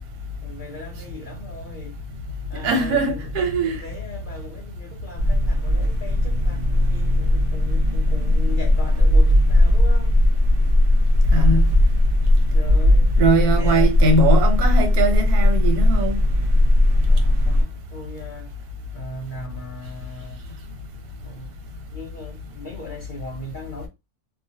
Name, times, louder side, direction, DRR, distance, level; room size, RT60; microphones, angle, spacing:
voice 1, 0.4-2.0 2.5-3.2 3.6-10.2 12.5-14.0 17.1-18.6 18.9-20.4 21.2-21.6 21.9-23.9, left 2 dB, 85° left, 0.4 m, -38 dB
voice 2, 2.6-3.8 11.3-11.6 13.2-16.2, right 2 dB, 90° right, 1.3 m, -21 dB
sound 1, 5.2-17.6, left 1 dB, 70° right, 0.5 m, -17 dB
2.5 x 2.2 x 2.7 m
omnidirectional pair, 1.6 m